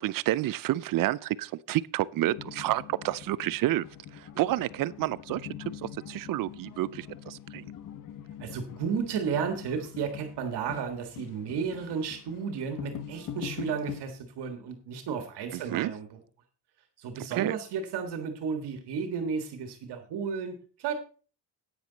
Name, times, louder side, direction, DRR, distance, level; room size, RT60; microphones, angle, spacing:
voice 1, 0.0-3.9 4.1-7.7 15.5-15.9 17.3-17.6, right 14 dB, 55° right, 0.5 m, -30 dB
sound 1, 2.3-14.0, left 9 dB, 50° left, 1.1 m, -43 dB
voice 2, 8.4-16.2 17.0-20.9, right 6 dB, 70° right, 1.8 m, -33 dB
10.5 x 9.4 x 4.0 m
cardioid pair, 145°, 41 cm